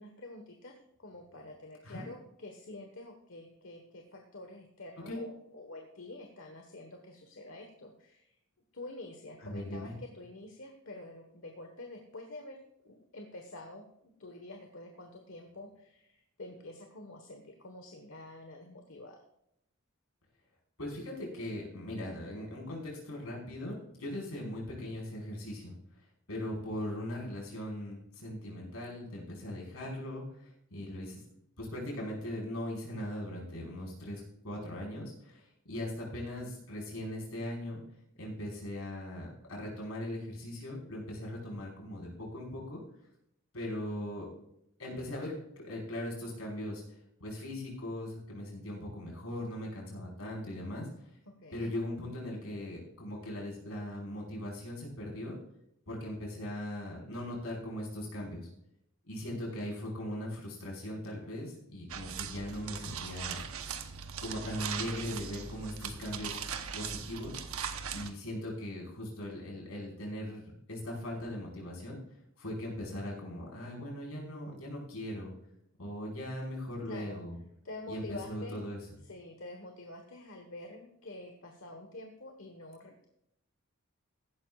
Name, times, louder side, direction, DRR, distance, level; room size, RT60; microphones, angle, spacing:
voice 1, 0.0-8.3 8.7-19.2 51.3-51.7 76.8-77.2 77.6-78.6 79.0-83.1, left 2 dB, 70° left, 4 dB, 1.4 m, -47 dB
voice 2, 9.4-9.9 20.8-25.7 26.3-31.2 31.6-37.8 38.2-42.8 43.5-44.3 44.8-46.8 47.2-50.9 51.5-55.4 55.9-58.5 59.1-63.4 64.2-66.4 66.7-67.4 67.9-72.0 72.4-75.3 75.8-77.4 77.9-78.8, left 1 dB, 90° left, -2 dB, 5.1 m, -39 dB
sound 1, 61.9-68.1, right 7 dB, 85° right, 1.0 m, -40 dB
15.5 x 12.0 x 2.4 m, 0.78 s
head